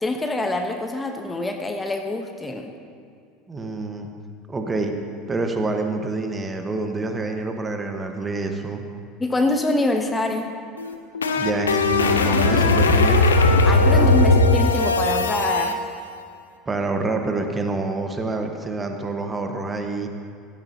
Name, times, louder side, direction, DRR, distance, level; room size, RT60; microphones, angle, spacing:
voice 1, 0.0-2.7 9.2-10.5 13.6-15.8, left 2 dB, 15° left, 4 dB, 1.0 m, -25 dB
voice 2, 3.5-4.1 4.5-4.9 5.3-8.8 11.4-13.2 13.8-14.2 16.7-20.1, right 3 dB, 20° right, 5 dB, 1.2 m, -27 dB
sound 1, 10.8-15.7, left 2 dB, 80° left, 0.7 m, -18 dB
17.0 x 13.0 x 2.8 m, 2.3 s
figure-of-eight pair, 75°, 0 cm